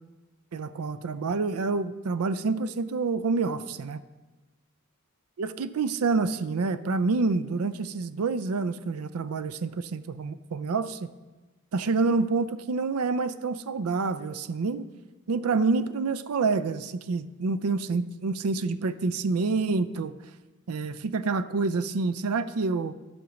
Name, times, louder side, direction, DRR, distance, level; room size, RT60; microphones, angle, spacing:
voice 1, 0.5-4.0 5.4-11.1 11.7-14.9 15.3-20.2 20.7-22.9, right 4 dB, 85° right, 14 dB, 0.5 m, -27 dB
12.5 x 5.1 x 7.0 m, 1.2 s
head